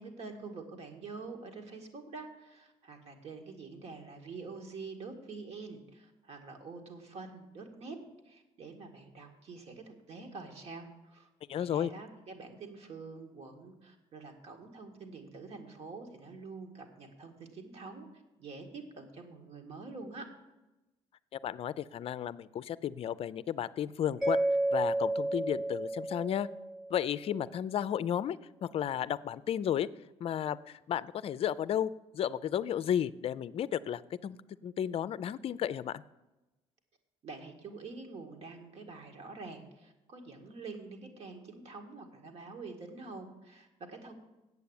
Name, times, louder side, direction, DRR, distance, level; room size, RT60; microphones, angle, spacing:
voice 1, 0.0-8.0 8.2-20.3 37.2-44.1, right 4 dB, 55° right, 4 dB, 2.0 m, -46 dB
voice 2, 11.5-11.9 21.4-24.4 24.7-26.5 26.9-29.9 30.2-34.4 34.6-36.0, left 10 dB, 50° left, 16 dB, 0.4 m, -33 dB
Mallet percussion, 24.2-27.2, right 1 dB, ahead, 0.7 m, -31 dB
8.3 x 6.9 x 8.6 m, 1.0 s
supercardioid pair, 80°, 12 cm